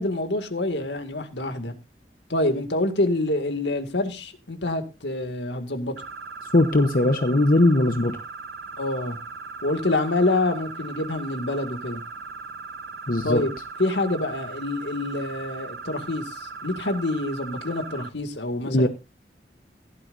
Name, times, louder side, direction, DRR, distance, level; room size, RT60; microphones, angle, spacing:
voice 1, 0.0-1.7 2.3-5.9 8.8-9.2 9.6-12.0 13.2-13.5 13.8-18.9, left 2 dB, 90° left, 2.2 m, -26 dB
Flying Car - Fly, 6.0-18.1, right 4 dB, 65° right, 0.9 m, -38 dB
voice 2, 6.5-8.2 13.1-13.4 18.7-18.9, left 1 dB, 50° left, 1.0 m, -19 dB
16.5 x 12.5 x 2.6 m
head